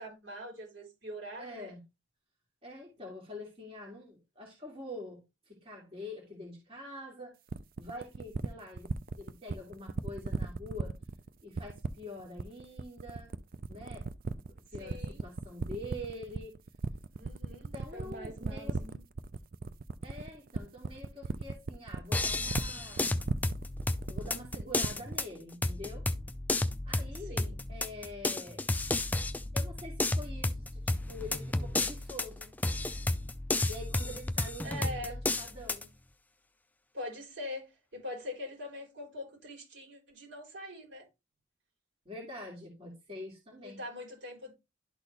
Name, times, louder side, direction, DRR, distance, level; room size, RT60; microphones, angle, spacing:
voice 1, 0.0-1.7 14.8-15.2 17.1-19.0 27.3-27.6 34.6-35.2 36.9-41.1 43.6-44.5, left 1 dB, 70° right, 4.8 m, -43 dB
voice 2, 1.4-1.8 2.6-7.3 7.8-8.9 9.2-10.9 11.4-13.3 13.7-14.1 14.7-16.5 17.5-18.8 20.0-23.2 24.1-26.1 26.8-28.6 29.5-32.6 33.7-34.7 35.0-35.9 42.0-43.8, left 1 dB, 30° right, 2.5 m, -45 dB
sound 1, 7.5-25.3, right 4 dB, 50° right, 0.5 m, -36 dB
sound 2, 22.1-35.8, left 2 dB, 10° left, 0.4 m, -32 dB
11.5 x 4.2 x 3.3 m
head